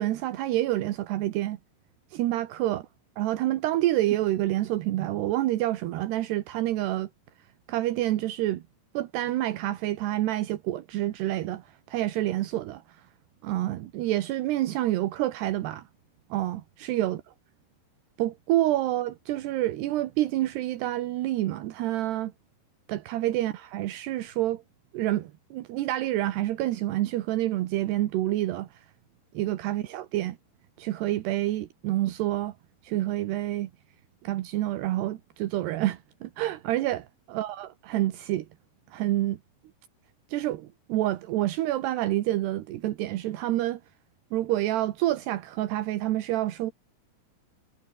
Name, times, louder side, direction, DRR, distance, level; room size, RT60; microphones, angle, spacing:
voice 1, 0.0-1.6 2.1-2.8 3.2-7.1 7.7-8.6 8.9-12.8 13.4-15.8 16.3-17.2 18.2-22.3 22.9-24.6 24.9-28.7 29.3-30.4 30.8-32.5 32.8-33.7 34.2-37.1 37.3-38.5 38.9-39.4 40.3-43.8 44.3-46.7, right 15 dB, 80° right, 3.2 m, -28 dB
omnidirectional pair, 4.8 m